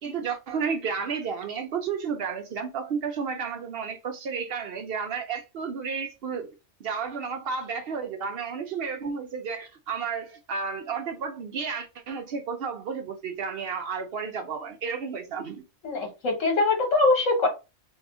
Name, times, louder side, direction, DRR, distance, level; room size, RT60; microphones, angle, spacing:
voice 1, 0.0-6.5 6.8-15.6, right 6 dB, 65° right, 0.6 m, -32 dB
voice 2, 15.8-17.5, left 3 dB, 70° left, 1.4 m, -22 dB
2.7 x 2.4 x 3.5 m
omnidirectional pair, 1.4 m